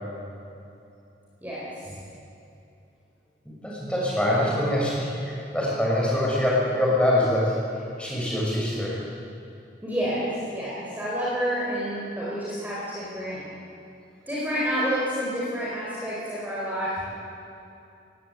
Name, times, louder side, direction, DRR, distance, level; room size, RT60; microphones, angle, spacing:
voice 1, 1.4-1.9 4.2-4.6 9.8-13.4 14.3-17.0, equal, 10° right, -8 dB, 4.7 m, -29 dB
voice 2, 3.6-7.5 8.0-9.0, left 1 dB, 5° left, -5 dB, 5.8 m, -24 dB
19.5 x 17.0 x 8.1 m, 2.7 s
head